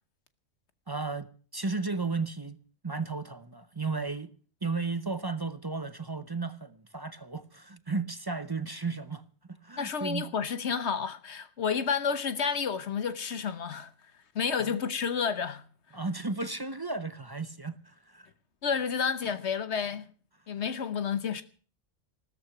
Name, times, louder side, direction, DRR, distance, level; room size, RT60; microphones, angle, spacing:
voice 1, 0.9-2.6 2.8-4.3 4.6-10.3 14.6-14.8 15.9-18.3, right 4 dB, 25° right, 0.6 m, -34 dB
voice 2, 9.8-13.9 14.3-15.6 18.6-20.1 20.5-21.4, left 6 dB, 65° left, 1.2 m, -30 dB
14.5 x 13.5 x 6.0 m
omnidirectional pair, 1.3 m